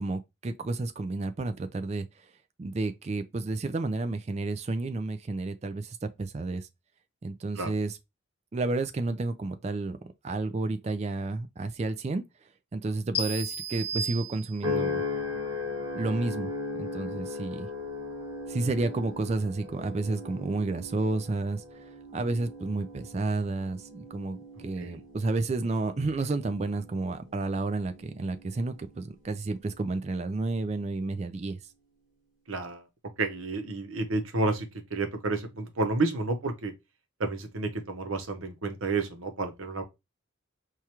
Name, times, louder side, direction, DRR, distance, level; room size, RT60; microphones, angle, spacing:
voice 1, 0.0-2.1 2.6-6.7 7.2-8.0 8.5-10.0 10.2-12.2 12.7-15.0 15.9-16.5 16.8-17.7 18.5-21.6 22.1-31.6, right 2 dB, 35° right, 0.3 m, -31 dB
sound 1, 13.1-14.9, equal, 30° left, 1.0 m, -34 dB
sound 2, 14.6-29.1 29.6-30.1, left 3 dB, 15° right, 1.8 m, -38 dB
voice 2, 32.5-32.8 33.2-36.7 37.2-39.8, right 3 dB, 85° right, 0.8 m, -30 dB
4.6 x 2.4 x 2.9 m
head